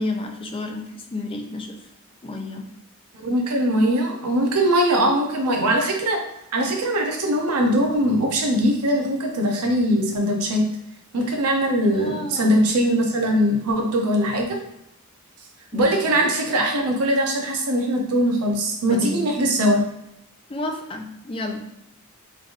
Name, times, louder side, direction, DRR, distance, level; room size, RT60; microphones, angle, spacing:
voice 1, 0.0-1.7 2.2-2.7 12.0-12.6 15.7-16.2 18.9-19.2 20.5-21.7, left 2 dB, 25° left, 3 dB, 0.4 m, -31 dB
voice 2, 3.2-6.2 6.5-10.6 11.1-14.6 15.7-19.8, equal, 85° right, 1 dB, 0.7 m, -21 dB
3.3 x 2.5 x 3.7 m, 0.79 s
head